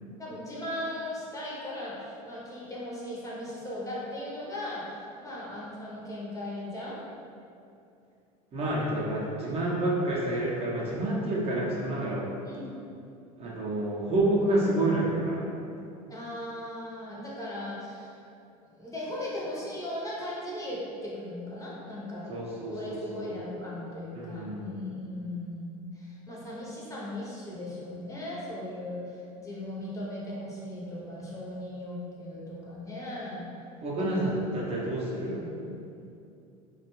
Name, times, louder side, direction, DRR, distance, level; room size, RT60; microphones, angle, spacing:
voice 1, 0.2-7.0 12.4-12.7 16.1-18.2 18.6-22.3 22.7-33.5 34.0-34.4, left 1 dB, 20° left, -6 dB, 0.7 m, -38 dB
voice 2, 8.5-12.2 13.4-15.4 22.3-23.3 24.1-24.8 33.8-35.5, right 1 dB, 35° right, -5 dB, 0.5 m, -29 dB
2.4 x 2.3 x 3.0 m, 2.6 s
hypercardioid pair, 85°, 19 cm